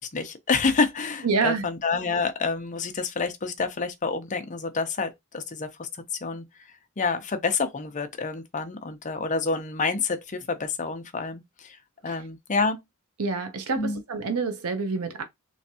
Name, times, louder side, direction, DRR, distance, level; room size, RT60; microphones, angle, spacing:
voice 1, 0.1-6.4 7.0-11.8 12.0-12.8 13.8-14.0, left 4 dB, 35° left, 0.6 m, -28 dB
voice 2, 1.2-1.7 12.1-12.2 13.2-15.2, right 4 dB, 85° right, 0.8 m, -27 dB
3.4 x 3.2 x 2.7 m
head